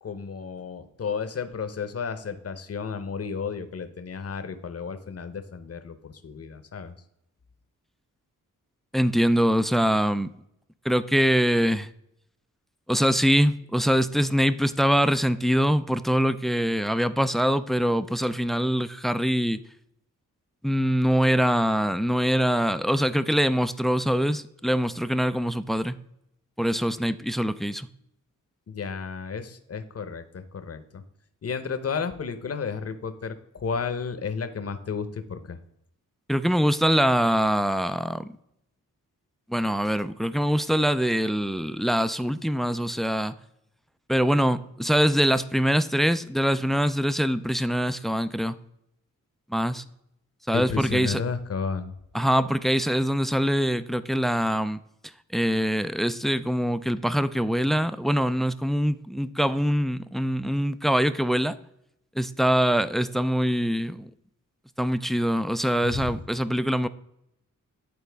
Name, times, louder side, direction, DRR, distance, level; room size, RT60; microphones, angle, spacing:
voice 1, 0.0-6.9 28.7-31.0 31.4-35.6 50.5-51.9 65.8-66.1, left 5 dB, 45° left, 10 dB, 0.8 m, -32 dB
voice 2, 8.9-10.3 10.8-11.9 12.9-19.6 20.6-26.0 26.6-27.9 36.3-38.3 39.5-43.3 44.1-48.6 49.5-49.8 50.5-51.2 52.1-54.8 55.3-61.6 62.2-64.1 64.8-66.9, equal, ahead, 14 dB, 0.3 m, -23 dB
10.5 x 4.2 x 3.4 m, 0.79 s
cardioid pair, 70°, 32 cm